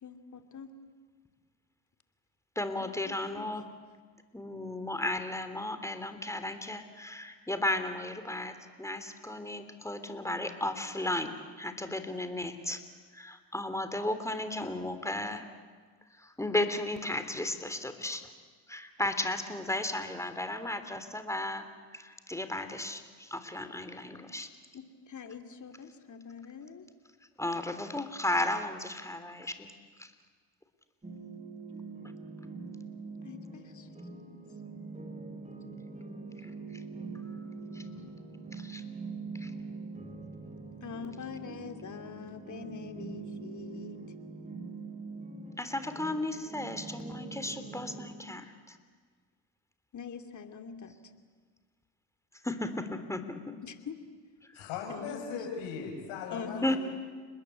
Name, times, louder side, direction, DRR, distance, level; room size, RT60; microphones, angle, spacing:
voice 1, 0.0-0.7 2.8-3.5 24.7-26.8 33.2-33.9 40.8-44.0 49.9-50.9 53.6-54.0 54.9-55.4 56.3-56.8, left 6 dB, 40° left, 7 dB, 2.9 m, -44 dB
voice 2, 2.6-3.7 4.3-12.8 13.1-15.4 16.2-18.3 18.7-21.7 21.9-24.5 27.4-29.7 30.0-30.1 36.4-36.5 37.7-37.8 38.5-38.8 39.3-39.5 45.6-48.8 52.4-53.6 54.6-54.7 56.6-56.8, left 1 dB, 5° left, 9 dB, 3.5 m, -34 dB
sound 1, 31.0-48.1, right 4 dB, 15° right, 3.8 m, -43 dB
voice 3, 54.5-56.8, left 6 dB, 75° left, 2 dB, 6.6 m, -38 dB
30.0 x 21.0 x 8.7 m, 1.5 s
hypercardioid pair, 65°, 43 cm